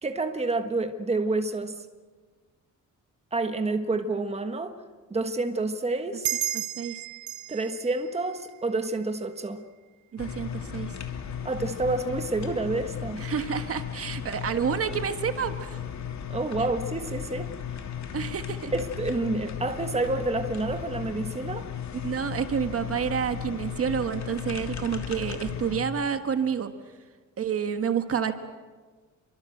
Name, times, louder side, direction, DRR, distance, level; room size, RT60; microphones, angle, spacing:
voice 1, 0.0-1.7 3.3-4.8 5.1-6.3 7.5-9.6 11.4-13.2 16.3-17.5 18.7-21.6, right 2 dB, 20° right, 7 dB, 1.5 m, -28 dB
sound 1, 6.2-9.3, right 12 dB, 65° right, 1.0 m, -34 dB
voice 2, 6.5-7.0 10.1-10.9 13.2-15.8 18.1-18.7 21.9-26.7 27.4-28.3, right 7 dB, 45° right, 8 dB, 1.4 m, -29 dB
sound 2, 10.2-25.8, left 8 dB, 60° left, 2.9 m, -36 dB
28.0 x 24.0 x 7.9 m, 1.4 s
wide cardioid pair, 165°, 31 cm